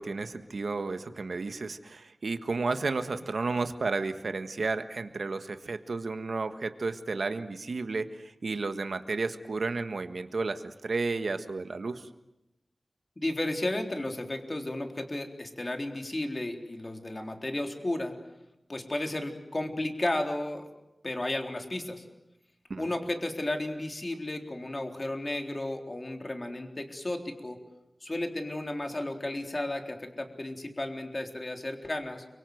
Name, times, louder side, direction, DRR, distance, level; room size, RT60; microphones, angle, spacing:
voice 1, 0.0-12.1 22.7-22.8, right 3 dB, 80° right, 8 dB, 1.5 m, -32 dB
voice 2, 13.2-18.1 18.7-20.7 21.0-22.0 22.8-27.6 28.0-32.2, left 1 dB, 35° left, 4 dB, 3.8 m, -33 dB
30.0 x 24.0 x 7.9 m, 0.91 s
wide cardioid pair, 85°, 0 cm